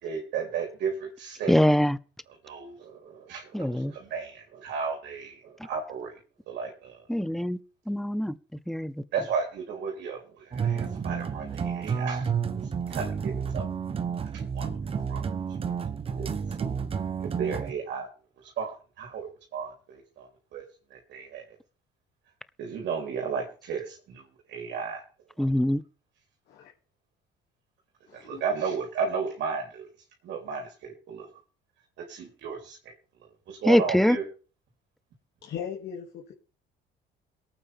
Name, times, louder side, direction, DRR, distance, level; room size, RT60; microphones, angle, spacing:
voice 1, 0.0-1.5 2.4-6.1 6.5-7.0 9.1-12.3 12.9-13.7 14.2-14.7 15.1-15.2 15.6-15.7 16.2-16.3 16.6-16.8 17.2-18.1 18.4-20.6 20.9-21.4 22.6-25.0 28.1-29.9 30.2-31.3 32.0-32.9 33.5-34.2, right 6 dB, 65° right, 3.5 m, -34 dB
voice 2, 1.5-2.0 3.5-3.9 7.1-7.6 7.9-8.4 8.7-9.0 25.4-25.8 33.6-34.2, equal, ahead, 0.6 m, -23 dB
sound 1, 10.5-17.7, right 6 dB, 30° right, 1.0 m, -31 dB
voice 3, 28.1-28.4 35.4-36.3, left 8 dB, 65° left, 2.4 m, -38 dB
23.0 x 9.0 x 3.5 m
cardioid pair, 125°, 19 cm